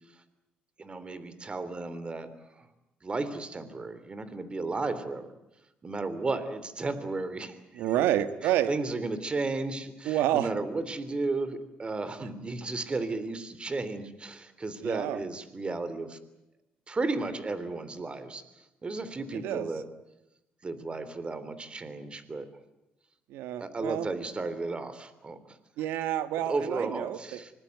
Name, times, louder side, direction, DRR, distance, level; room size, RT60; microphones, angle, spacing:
voice 1, 0.8-2.3 2.6-2.7 3.0-5.3 5.8-7.9 8.4-16.2 16.9-18.4 18.8-19.8 20.6-22.5 23.6-25.9 26.5-27.5, right 3 dB, 30° right, 13 dB, 3.3 m, -34 dB
voice 2, 7.7-8.7 10.0-10.5 12.2-12.3 14.8-15.2 19.3-19.7 23.3-24.1 25.8-27.4, right 12 dB, 85° right, 12 dB, 1.5 m, -29 dB
25.5 x 19.5 x 9.3 m, 0.90 s
cardioid pair, 85°, 4 cm